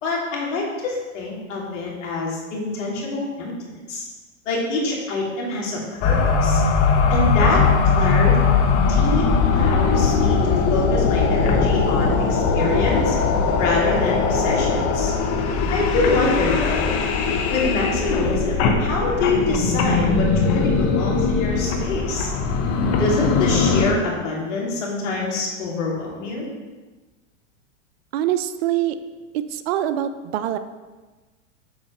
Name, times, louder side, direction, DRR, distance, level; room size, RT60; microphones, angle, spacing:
voice 1, 0.0-4.0 4.5-6.6 7.1-8.4 8.9-13.2 13.6-15.1 15.7-16.9 17.5-22.3 23.0-26.5, left 3 dB, 65° left, -3 dB, 2.7 m, -25 dB
sound 1, 6.0-23.9, left 4 dB, 40° left, 1.0 m, -20 dB
voice 2, 28.1-29.0 29.5-30.6, right 12 dB, 50° right, 11 dB, 0.6 m, -24 dB
7.5 x 4.3 x 5.7 m, 1.3 s
hypercardioid pair, 105°, 39 cm